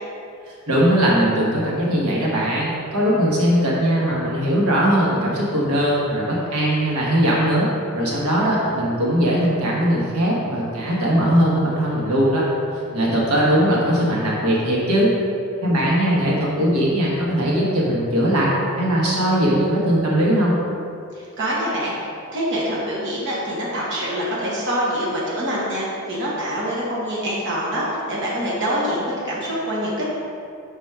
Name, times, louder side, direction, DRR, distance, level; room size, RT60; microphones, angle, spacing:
voice 1, 0.5-12.5 12.9-15.1 15.6-20.6, equal, 90° right, -4 dB, 1.3 m, -20 dB
voice 2, 21.2-30.1, equal, 55° right, -6 dB, 1.2 m, -25 dB
5.6 x 4.1 x 4.7 m, 2.5 s
head